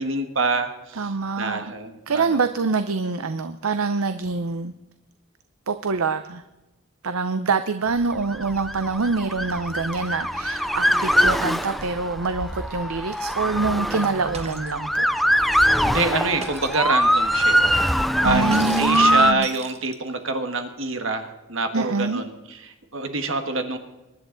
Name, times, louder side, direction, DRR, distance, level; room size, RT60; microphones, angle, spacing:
voice 1, 0.0-1.1 1.4-2.4 15.8-23.8, right 3 dB, 65° right, 6 dB, 1.5 m, -26 dB
voice 2, 1.0-1.7 2.1-4.7 5.7-6.4 7.0-15.1 18.2-19.5 21.7-22.2, right 4 dB, 85° right, 10 dB, 0.7 m, -25 dB
Motor vehicle (road) / Siren, 8.2-19.3, equal, ahead, 0.4 m, -22 dB
Shatter, 14.3-14.8 16.4-16.9 18.5-20.2, right 5 dB, 30° right, 1.1 m, -38 dB
23.0 x 11.0 x 3.9 m, 1.0 s
head